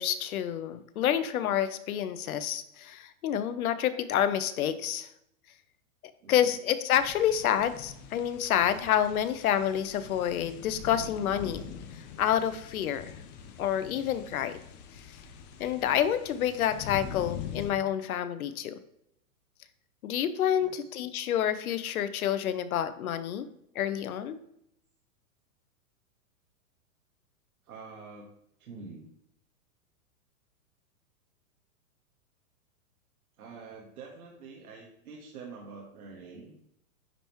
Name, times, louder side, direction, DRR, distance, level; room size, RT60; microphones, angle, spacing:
voice 1, 0.0-5.1 6.3-11.6 12.2-13.2 13.6-14.6 15.6-18.8 20.0-23.4 23.8-24.4, left 10 dB, 80° left, 13 dB, 0.7 m, -28 dB
voice 2, 6.2-6.6 20.6-20.9 27.6-28.3 28.6-29.0 33.4-36.5, right 4 dB, 90° right, -2 dB, 1.5 m, -46 dB
sound 1, 7.0-17.7, left 7 dB, 30° left, 0.6 m, -44 dB
9.9 x 3.5 x 3.0 m, 0.75 s
hypercardioid pair, 145°, 43 cm